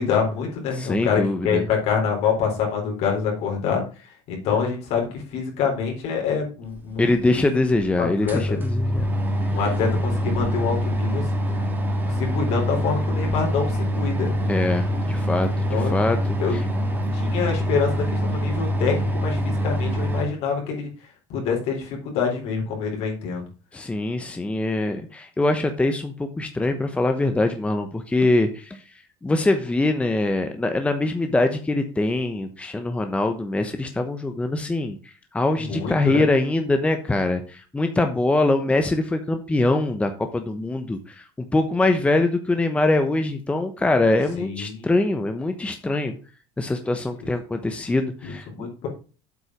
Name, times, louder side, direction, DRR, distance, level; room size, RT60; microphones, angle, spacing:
voice 1, 0.0-3.8 4.3-7.1 8.0-8.6 9.5-11.3 12.1-14.5 14.9-15.0 15.7-16.0 16.4-16.6 17.1-20.9 21.3-23.4 35.6-36.3 44.4-44.9 48.2-48.9, left 6 dB, 60° left, 0 dB, 3.8 m, -26 dB
voice 2, 0.7-1.7 7.0-9.1 14.5-16.6 23.7-28.8 29.2-41.2 41.5-46.1 46.6-48.7, left 2 dB, 10° left, 7 dB, 0.9 m, -23 dB
sound 1, 7.0-7.1 7.7-7.8 8.1-20.2, equal, 15° right, 2.0 m, -24 dB
8.0 x 5.3 x 6.0 m, 0.37 s
supercardioid pair, 120°, 12 cm